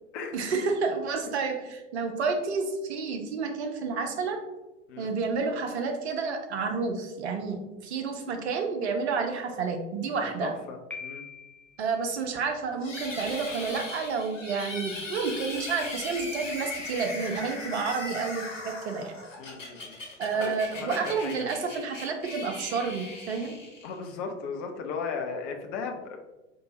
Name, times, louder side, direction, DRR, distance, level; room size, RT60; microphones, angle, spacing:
voice 1, 0.3-4.4 5.0-10.5 11.8-19.1 20.2-23.5, right 5 dB, 60° right, 4 dB, 0.9 m, -30 dB
voice 2, 10.1-11.2 19.4-20.0 20.4-21.5 23.8-26.2, left 5 dB, 40° left, 4 dB, 0.8 m, -36 dB
Piano, 10.9-11.9, left 5 dB, 5° left, 0.4 m, -41 dB
sound 1, 12.8-24.1, left 2 dB, 80° left, 1.2 m, -39 dB
4.8 x 3.8 x 2.7 m, 1.0 s
figure-of-eight pair, 90°, 37 cm